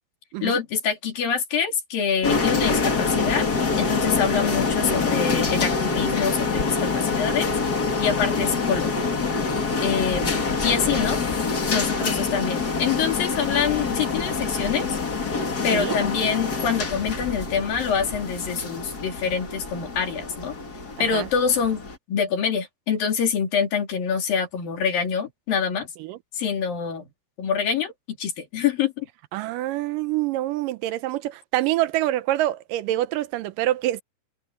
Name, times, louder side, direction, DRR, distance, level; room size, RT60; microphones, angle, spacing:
voice 1, 0.4-3.5 3.8-7.5 8.0-9.1 9.8-11.2 11.7-15.0 15.6-20.6 21.0-21.8 22.1-25.9 26.3-27.1 27.4-27.9 28.2-29.1, left 7 dB, 90° left, 4.8 m, -25 dB
sound 1, 2.2-22.0, left 4 dB, 30° left, 2.4 m, -26 dB
sound 2, 10.0-18.3, right 1 dB, 15° right, 4.3 m, -41 dB
voice 2, 12.0-12.4 15.7-15.9 21.0-21.3 26.0-26.2 29.3-34.0, right 15 dB, 80° right, 2.3 m, -26 dB
omnidirectional pair, 3.9 m